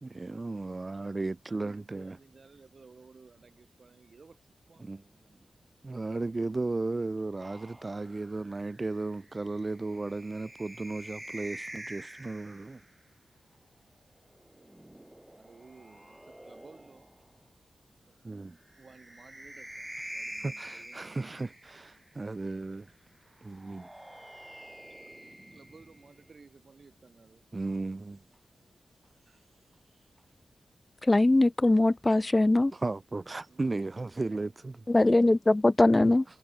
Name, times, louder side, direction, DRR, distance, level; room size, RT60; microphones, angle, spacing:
voice 1, 0.0-2.2 4.8-5.0 5.8-12.8 18.2-18.6 20.4-22.9 23.4-23.9 27.5-28.2 32.7-34.8 36.0-36.1, right 3 dB, 40° right, 0.8 m, -35 dB
voice 2, 1.5-6.2 14.5-17.3 18.0-21.6 25.0-25.2 25.5-27.5 29.3-29.5 33.5-33.8, right 4 dB, 60° right, 6.8 m, -58 dB
sound 1, 7.4-12.9 14.3-17.3 18.7-22.1 23.4-26.3, right 1 dB, 15° right, 2.5 m, -47 dB
voice 3, 31.0-32.7 34.9-36.2, left 2 dB, 25° left, 0.4 m, -22 dB
cardioid pair, 45°, 0 cm